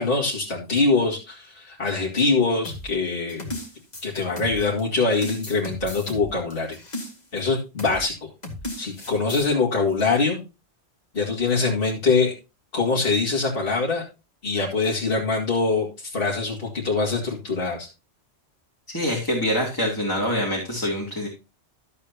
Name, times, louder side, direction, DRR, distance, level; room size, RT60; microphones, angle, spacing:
voice 1, 0.0-3.5 4.0-6.8 7.3-8.3 8.8-10.4 11.1-12.3 12.7-14.0 14.4-17.9, left 3 dB, 50° left, -4 dB, 2.5 m, -23 dB
sound 1, 2.6-4.8 5.2-7.4 7.8-8.0 8.4-9.5, left 1 dB, 35° left, 2.4 m, -35 dB
voice 2, 18.9-21.3, equal, 15° left, -3 dB, 2.9 m, -25 dB
13.0 x 8.2 x 2.9 m, 0.28 s
omnidirectional pair, 1.2 m